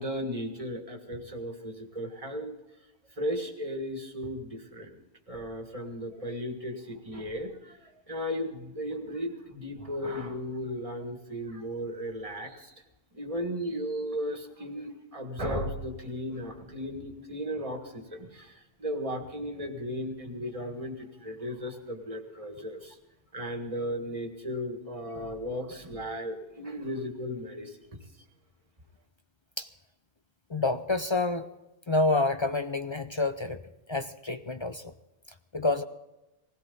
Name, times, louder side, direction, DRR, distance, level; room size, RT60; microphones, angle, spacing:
voice 1, 0.0-2.5 3.2-5.0 5.3-12.7 13.1-23.0 23.3-27.8, equal, 30° right, 4 dB, 1.9 m, -35 dB
voice 2, 30.5-31.5 31.9-33.6 33.9-34.8 35.5-35.8, left 2 dB, 40° left, 9 dB, 0.4 m, -28 dB
20.0 x 16.5 x 4.0 m, 0.99 s
omnidirectional pair, 1.2 m